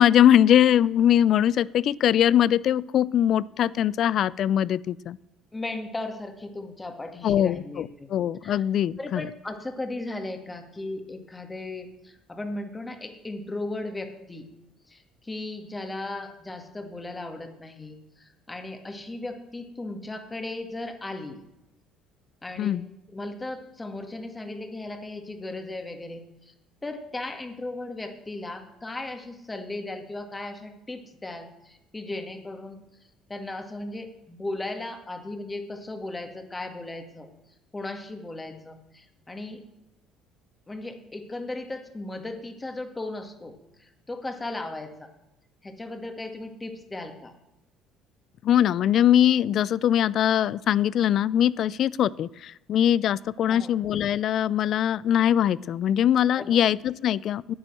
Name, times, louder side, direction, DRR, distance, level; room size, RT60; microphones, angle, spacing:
voice 1, 0.0-5.2 7.2-9.3 22.6-22.8 48.4-57.5, left 10 dB, 60° left, 22 dB, 0.4 m, -22 dB
voice 2, 5.5-8.1 8.4-8.6 9.0-14.5 14.9-21.4 22.4-22.8 23.1-26.5 26.8-32.8 33.3-37.3 37.7-39.6 40.7-45.1 45.6-47.3 53.5-53.7 56.4-56.6, left 2 dB, 20° left, 5 dB, 1.9 m, -36 dB
10.0 x 8.9 x 7.7 m, 0.90 s
supercardioid pair, 85°, 0 cm